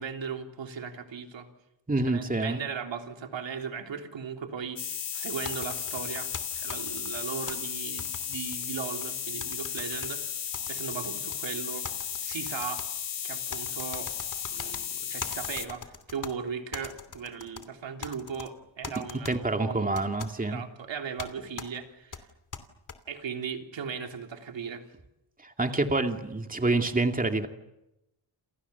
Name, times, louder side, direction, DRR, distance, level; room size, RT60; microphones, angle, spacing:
voice 1, 0.0-1.5 2.0-10.3 10.7-11.9 12.2-12.8 13.2-14.1 14.5-19.9 20.5-22.3 23.1-24.8, right 6 dB, 80° right, 4 dB, 3.5 m, -37 dB
voice 2, 1.9-2.6 19.3-20.6 25.4-27.5, right 2 dB, 20° right, 5 dB, 2.4 m, -27 dB
sound 1, 4.8-15.7, left 8 dB, 75° left, 2.1 m, -35 dB
sound 2, 5.4-7.5 8.0-9.1 9.4-10.1 10.5-11.4 11.8-12.9 13.5-14.8 15.2-16.3 16.7-17.7 18.0-18.5 18.8-19.3 19.9-20.3 21.2-21.3 21.6-21.7 22.1-23.0, left 5 dB, 45° left, 2.9 m, -41 dB
29.0 x 28.0 x 7.1 m, 0.89 s
cardioid pair, 90°, 44 cm